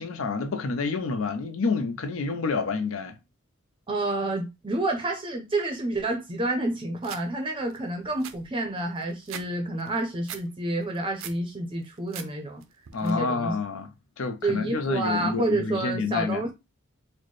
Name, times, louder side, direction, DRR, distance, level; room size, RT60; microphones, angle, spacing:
voice 1, 0.0-3.1 12.9-13.9 14.2-16.4, left 4 dB, 75° left, 0.6 m, -28 dB
voice 2, 3.9-12.6 13.0-13.5 14.4-16.5, right 2 dB, 25° right, 0.6 m, -29 dB
sound 1, 7.0-7.2 7.7-7.8 8.0-9.5 9.8-10.4 10.8-11.4 11.8-12.3 12.6-13.1, right 9 dB, 70° right, 0.4 m, -40 dB
4.1 x 2.1 x 3.2 m
head